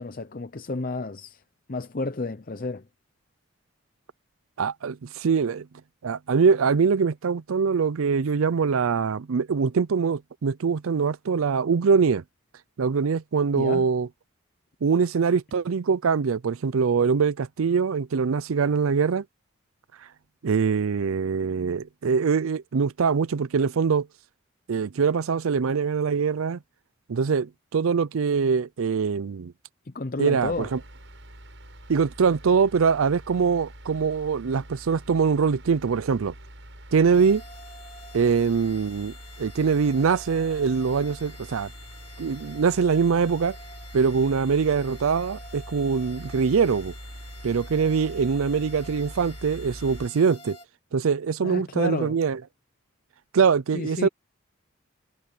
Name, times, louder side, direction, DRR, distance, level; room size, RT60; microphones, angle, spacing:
voice 1, 0.0-1.4 1.7-2.8 13.5-13.9 29.8-30.7 51.4-52.2 53.7-54.1, left 3 dB, 40° left, 0.6 m, -31 dB
voice 2, 4.6-5.7 6.0-12.2 12.8-14.1 14.8-19.2 20.4-24.1 24.7-26.6 27.1-29.5 30.2-30.8 31.9-36.3 36.9-37.4 38.1-41.7 42.2-43.6 43.9-46.9 47.4-50.6 50.9-52.4 53.3-54.1, right 5 dB, 85° right, 0.5 m, -23 dB
sound 1, 30.4-50.1, right 1 dB, 60° right, 7.6 m, -44 dB
sound 2, 37.1-50.6, left 2 dB, 25° left, 3.1 m, -48 dB
head